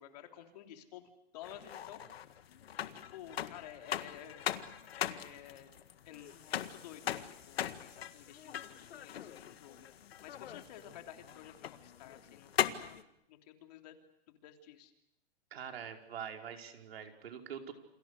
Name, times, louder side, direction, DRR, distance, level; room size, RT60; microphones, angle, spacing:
voice 1, 0.0-2.0 2.8-4.5 4.9-5.7 6.0-9.9 10.2-13.0 13.3-14.0 14.3-14.9, left 11 dB, 40° left, 5 dB, 3.3 m, -52 dB
sound 1, 1.4-13.0, left 10 dB, 80° left, 1.9 m, -40 dB
voice 2, 15.5-17.7, right 8 dB, 80° right, 4 dB, 5.1 m, -44 dB
29.0 x 28.5 x 6.8 m, 0.80 s
hypercardioid pair, 175°, 30 cm